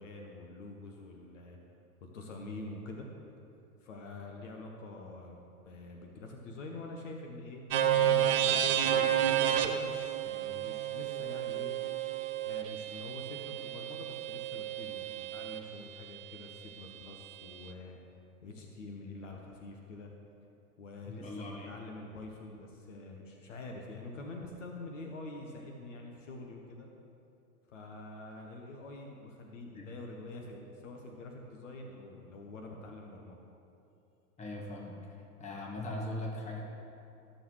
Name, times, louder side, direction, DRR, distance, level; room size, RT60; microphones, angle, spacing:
voice 1, 0.0-1.6 2.0-3.1 3.8-7.6 7.9-11.7 12.4-18.0 18.4-20.1 20.8-26.9 27.7-33.4, left 2 dB, 55° left, 1 dB, 1.1 m, -46 dB
sound 1, 7.7-15.6, right 10 dB, 40° right, 0.6 m, -31 dB
voice 2, 21.1-21.7 29.7-29.9 34.4-35.0 35.4-36.6, left 1 dB, 15° left, -2 dB, 1.4 m, -39 dB
13.0 x 6.4 x 3.2 m, 2.8 s
figure-of-eight pair, 100°, 46 cm